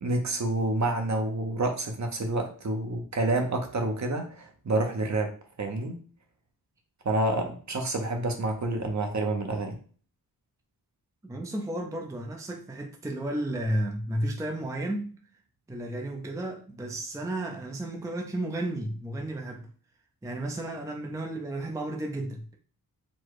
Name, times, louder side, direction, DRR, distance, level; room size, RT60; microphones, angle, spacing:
voice 1, 0.0-5.3 5.6-6.0 7.0-9.8, right 2 dB, 45° right, 0.9 m, -28 dB
voice 2, 11.2-15.2 15.7-19.7 20.2-22.5, right 1 dB, 10° right, 0.5 m, -33 dB
4.2 x 2.3 x 4.7 m
wide cardioid pair, 135°, 39 cm